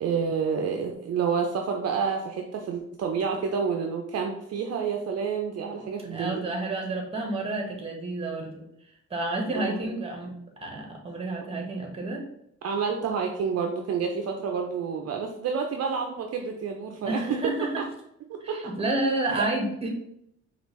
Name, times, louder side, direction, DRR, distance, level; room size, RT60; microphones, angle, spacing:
voice 1, 0.0-6.4 9.5-9.8 12.6-17.2 17.8-17.9 18.3-18.6 19.3-19.5, right 6 dB, 55° right, 3 dB, 0.6 m, -29 dB
voice 2, 6.1-8.6 9.1-10.3 10.6-12.2 17.0-17.7 18.4-19.9, right 2 dB, 20° right, 1 dB, 1.2 m, -30 dB
5.0 x 2.5 x 3.1 m, 0.75 s
cardioid pair, 90°, 30 cm